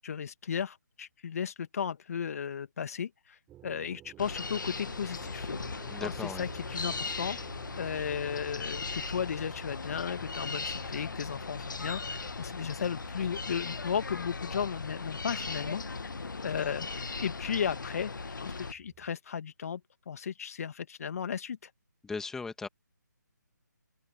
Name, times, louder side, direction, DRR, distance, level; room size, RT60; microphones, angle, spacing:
voice 1, 0.0-5.5 6.0-7.4 7.8-15.8 16.4-18.1 18.4-19.8 20.1-21.7, left 7 dB, 50° left, 2.0 m, -35 dB
sound 1, 3.5-19.1, right 13 dB, 15° right, 6.8 m, -55 dB
sound 2, 4.2-18.7, left 4 dB, 80° left, 1.6 m, -38 dB
voice 2, 5.9-6.5 22.0-22.7, left 4 dB, 5° left, 2.2 m, -37 dB
open air
figure-of-eight pair, 155°, 10 cm